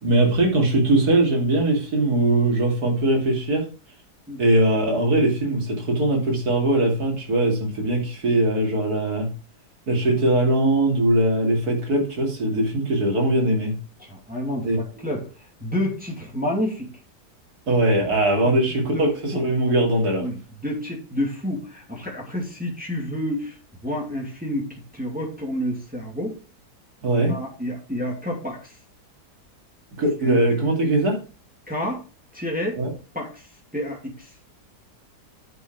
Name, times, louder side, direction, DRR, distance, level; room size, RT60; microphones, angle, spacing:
voice 1, 0.0-3.6 4.4-9.3 9.9-13.7 14.6-14.8 17.7-20.3 27.0-27.3 29.9-31.2 32.8-32.9, right 1 dB, 65° right, 0 dB, 3.2 m, -21 dB
voice 2, 14.0-16.9 18.4-18.5 18.9-19.0 19.3-19.4 20.2-23.6 23.8-26.4 27.3-28.8 30.2-30.4 31.7-32.0 32.3-32.8 33.1-34.3, equal, 5° right, -2 dB, 2.5 m, -29 dB
9.2 x 6.1 x 4.6 m, 0.33 s
omnidirectional pair, 1.8 m